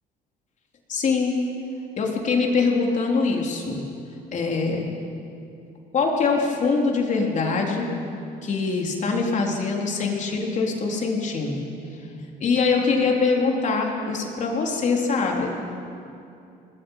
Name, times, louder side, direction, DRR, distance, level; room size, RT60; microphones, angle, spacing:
voice 1, 0.9-1.4 2.0-3.9 4.3-5.0 5.9-7.9 8.4-11.6 12.0-15.5, left 4 dB, 45° left, 0 dB, 3.8 m, -23 dB
26.5 x 20.0 x 5.7 m, 2.6 s
cardioid pair, 110°, 17 cm